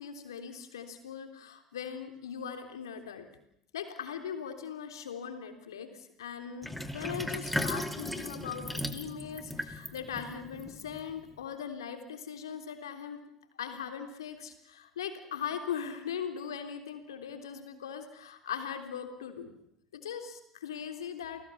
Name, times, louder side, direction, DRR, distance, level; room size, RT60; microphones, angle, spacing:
voice 1, 0.0-3.3 3.7-13.2 13.6-19.5 19.9-21.4, left 7 dB, 80° left, 7 dB, 3.5 m, -40 dB
Sink (filling or washing), 6.6-11.4, left 1 dB, 5° left, 2.5 m, -37 dB
29.5 x 19.0 x 7.2 m, 0.76 s
figure-of-eight pair, 70°, 2 cm